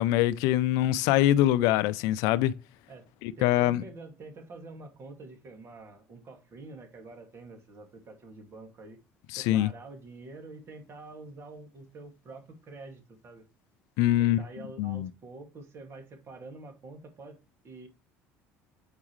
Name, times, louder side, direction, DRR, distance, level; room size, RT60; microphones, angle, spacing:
voice 1, 0.0-2.5 3.2-3.8 9.3-9.7 14.0-14.4 14.8-15.1, left 14 dB, 75° left, 0.4 m, -24 dB
voice 2, 3.4-9.0 9.4-13.5 14.2-17.4 17.6-17.9, right 3 dB, 45° right, 2.1 m, -47 dB
8.1 x 4.8 x 3.1 m
supercardioid pair, 80°, 6 cm